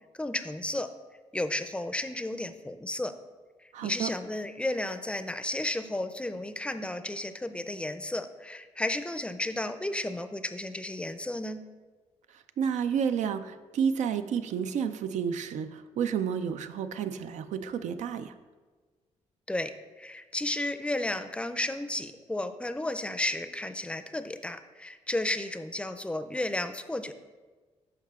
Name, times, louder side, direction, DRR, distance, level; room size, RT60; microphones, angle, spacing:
voice 1, 0.2-0.9 1.3-3.1 3.8-11.6 19.5-19.7 20.0-27.1, left 1 dB, 10° left, 10 dB, 0.5 m, -33 dB
voice 2, 3.7-4.1 12.3-18.3, right 7 dB, 75° right, 9 dB, 0.4 m, -30 dB
12.0 x 4.7 x 2.4 m, 1.3 s
cardioid pair, 75°, 12 cm